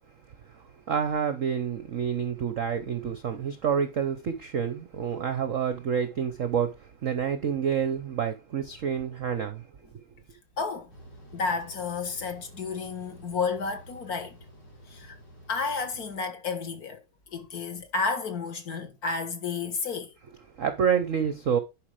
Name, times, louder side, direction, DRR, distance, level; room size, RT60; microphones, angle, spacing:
voice 1, 0.9-9.6 20.6-21.6, right 7 dB, 60° right, 0.8 m, -28 dB
voice 2, 10.6-10.9 11.3-14.4 14.9-15.2 15.5-20.1, left 4 dB, 50° left, 1.7 m, -31 dB
sound 1, 10.9-16.2, right 1 dB, 85° left, 5.4 m, -50 dB
10.5 x 4.9 x 4.9 m
omnidirectional pair, 2.3 m